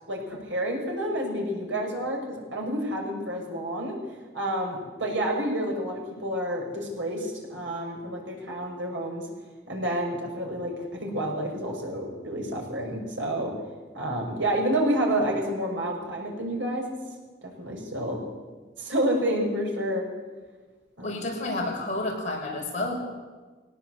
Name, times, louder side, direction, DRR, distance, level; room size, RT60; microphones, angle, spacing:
voice 1, 0.1-4.0 4.3-9.3 9.7-13.5 13.9-16.9 17.4-18.2 18.8-20.1 21.0-21.2, right 1 dB, 90° right, 0 dB, 6.1 m, -29 dB
voice 2, 21.0-23.0, left 2 dB, 40° left, -1 dB, 5.9 m, -30 dB
21.5 x 18.0 x 8.1 m, 1.4 s
head